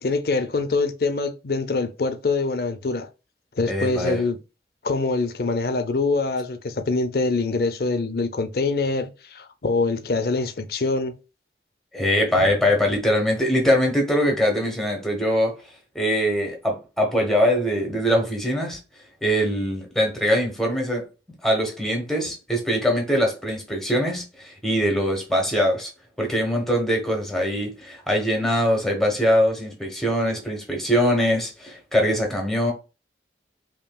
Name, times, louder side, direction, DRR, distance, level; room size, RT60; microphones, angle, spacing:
voice 1, 0.0-3.1 3.6-4.4 4.8-11.1 12.4-12.6, left 3 dB, 55° left, 0.6 m, -24 dB
voice 2, 3.7-4.2 11.9-15.6 15.9-18.8 19.2-21.1 21.4-25.9 26.2-32.7, equal, ahead, 1.1 m, -22 dB
5.4 x 2.9 x 2.3 m
head